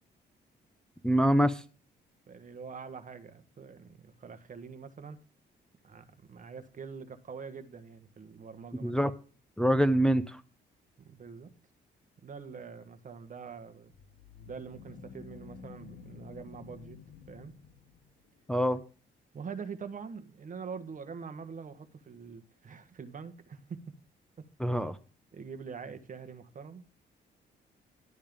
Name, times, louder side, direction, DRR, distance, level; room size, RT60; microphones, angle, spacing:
voice 1, 1.0-1.6 8.8-9.1 9.6-10.4 18.5-18.8 24.6-25.0, equal, 5° left, 0.6 m, -25 dB
voice 2, 2.3-5.2 5.8-8.9 11.0-11.5 12.2-13.9 14.4-17.0 17.3-17.5 19.3-23.9 24.4-24.5 25.3-26.8, right 5 dB, 45° right, 1.3 m, -44 dB
sound 1, 13.9-18.3, left 5 dB, 70° left, 1.3 m, -50 dB
12.0 x 8.6 x 3.7 m
cardioid pair, 95°, 19 cm